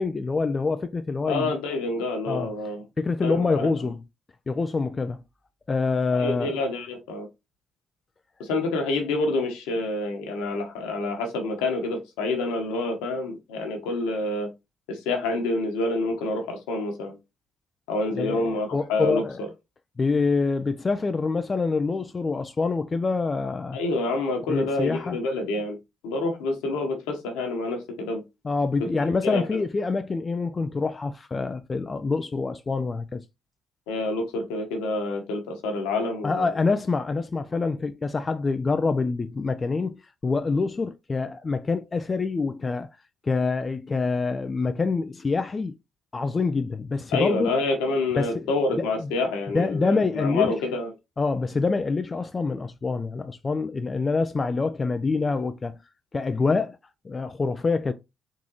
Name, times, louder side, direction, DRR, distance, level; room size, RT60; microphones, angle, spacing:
voice 1, 0.0-1.5 2.3-2.5 3.0-4.0 4.5-5.2 5.7-6.6 18.2-19.4 20.0-23.8 24.5-25.2 28.4-33.2 36.2-42.9 43.2-45.8 46.1-47.5 48.2-48.5 49.0-49.1 49.5-50.5 51.2-55.8 56.1-56.8 57.0-57.9, left 4 dB, 35° left, 0.4 m, -26 dB
voice 2, 1.3-2.8 3.2-3.7 6.1-7.3 8.4-14.5 14.9-17.1 17.9-19.2 23.7-25.8 26.0-28.2 29.2-29.5 33.9-36.5 47.1-50.9, left 2 dB, 80° left, 1.1 m, -27 dB
3.9 x 3.6 x 2.9 m
hypercardioid pair, 45°, 0 cm